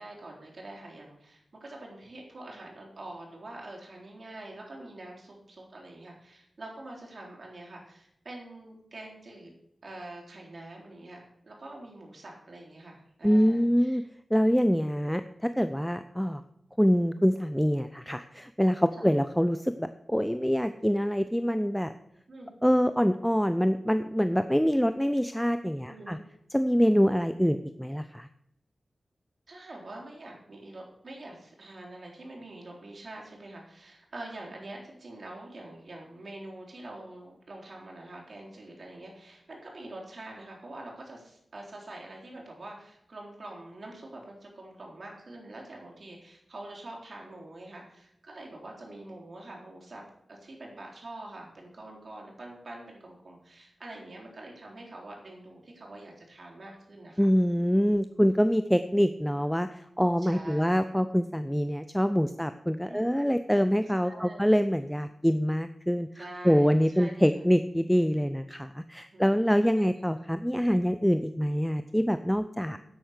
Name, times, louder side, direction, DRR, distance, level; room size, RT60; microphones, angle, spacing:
voice 1, 0.0-9.5 9.8-14.0 18.9-19.1 22.3-22.5 25.8-26.2 29.5-50.0 50.3-57.3 57.6-57.8 60.2-60.7 62.9-63.1 64.0-64.5 66.1-67.2 69.1-70.0 72.6-72.8, right 2 dB, 55° right, -1 dB, 3.7 m, -45 dB
voice 2, 13.2-14.0 14.3-16.4 16.8-21.9 22.6-26.2 26.5-28.3 57.2-72.8, equal, ahead, 11 dB, 0.5 m, -25 dB
9.8 x 8.1 x 6.5 m, 0.74 s
wide cardioid pair, 80°, 0 cm